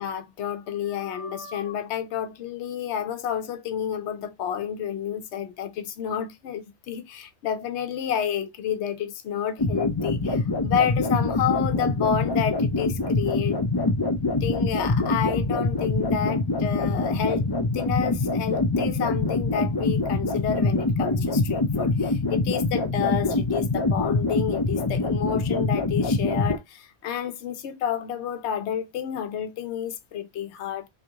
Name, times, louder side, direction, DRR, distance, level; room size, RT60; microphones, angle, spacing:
voice 1, 0.0-13.6 14.4-17.5 17.7-30.9, left 8 dB, 75° left, 0.9 m, -30 dB
sound 1, 9.6-26.6, left 2 dB, 40° left, 0.3 m, -24 dB
3.6 x 3.3 x 2.8 m
omnidirectional pair, 1.2 m